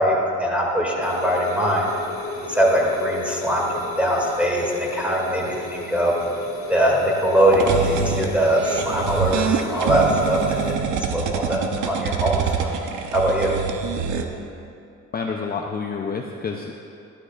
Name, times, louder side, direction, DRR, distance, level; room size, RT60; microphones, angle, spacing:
voice 1, 0.0-1.9 2.5-3.7 4.0-6.1 6.7-10.7 11.1-12.8 13.1-13.5, right 1 dB, 5° right, -3 dB, 2.3 m, -21 dB
sound 1, 1.0-10.8, left 4 dB, 45° left, 1.4 m, -35 dB
sound 2, 7.4-14.2, right 6 dB, 80° right, 0.8 m, -26 dB
voice 2, 15.1-16.7, left 5 dB, 30° left, 1 dB, 0.6 m, -28 dB
13.5 x 11.5 x 2.5 m, 2.6 s
cardioid pair, 90°, 30 cm